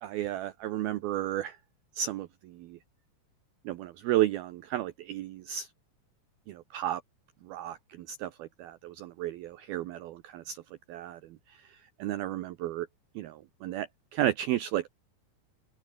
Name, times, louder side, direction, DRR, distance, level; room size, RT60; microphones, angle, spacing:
voice 1, 0.0-1.6 2.0-2.3 2.6-2.8 3.7-5.7 6.5-7.0 7.5-10.6 10.9-11.2 12.0-12.9 13.2-13.9 14.1-14.9, right 13 dB, 85° right, 2.1 m, -32 dB
open air
omnidirectional pair, 5.5 m